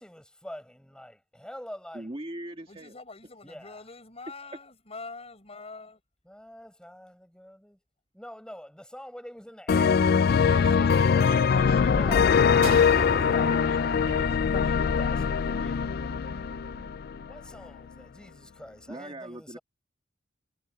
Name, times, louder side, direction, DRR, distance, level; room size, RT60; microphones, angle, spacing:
voice 1, 0.0-2.1 3.4-3.8 6.3-7.8 8.1-11.1 11.9-12.3 12.9-13.5 14.5-14.7 15.0-15.9 17.3-19.6, equal, 5° left, 7.6 m, -45 dB
voice 2, 1.9-2.9 10.5-14.9 18.9-19.6, right 2 dB, 25° right, 1.8 m, -42 dB
voice 3, 2.7-6.0, left 3 dB, 30° left, 5.3 m, -44 dB
sound 1, 9.7-17.3, left 6 dB, 50° left, 0.4 m, -22 dB
sound 2, 12.6-17.2, right 4 dB, 80° right, 0.7 m, -39 dB
head